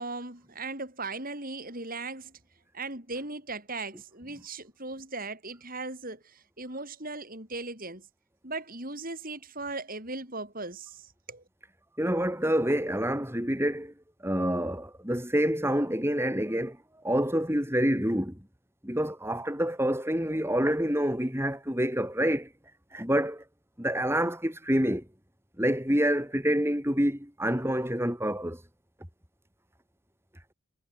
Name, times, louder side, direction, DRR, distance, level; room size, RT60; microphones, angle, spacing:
voice 1, 0.0-2.3 2.7-8.1 8.4-11.4, right 3 dB, 40° right, 7.8 m, -38 dB
voice 2, 12.0-13.9 14.2-16.8 17.0-18.4 18.8-22.5 22.9-23.4 23.8-25.0 25.6-28.6, equal, 10° right, 5.0 m, -27 dB
head